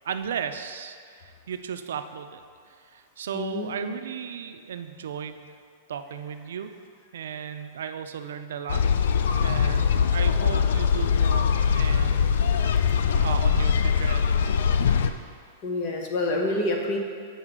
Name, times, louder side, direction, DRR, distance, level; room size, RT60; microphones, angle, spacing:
voice 1, 0.0-2.4 2.7-5.5 5.9-6.7 7.1-8.8 9.4-14.6, right 7 dB, 85° right, 8 dB, 0.4 m, -35 dB
voice 2, 3.3-3.9 15.6-17.0, left 2 dB, 30° left, 1 dB, 0.8 m, -27 dB
sound 1, 8.7-15.1, left 6 dB, 70° left, 0.4 m, -22 dB
7.8 x 5.4 x 3.7 m, 2.1 s
supercardioid pair, 175°, 0 cm